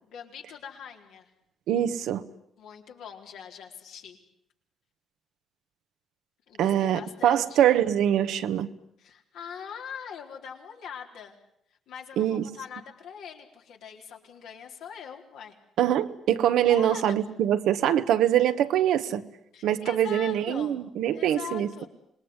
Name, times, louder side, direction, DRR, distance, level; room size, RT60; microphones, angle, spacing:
voice 1, 0.0-1.3 2.6-4.2 6.5-7.6 9.0-11.4 11.9-15.6 16.7-17.1 19.5-20.8 21.1-21.9, left 7 dB, 85° left, 1 dB, 4.2 m, -42 dB
voice 2, 1.7-2.2 6.6-8.7 12.2-12.4 15.8-19.2 19.6-21.9, right 11 dB, 85° right, 10 dB, 1.4 m, -24 dB
27.0 x 20.5 x 9.8 m, 0.76 s
cardioid pair, 90°, 0 cm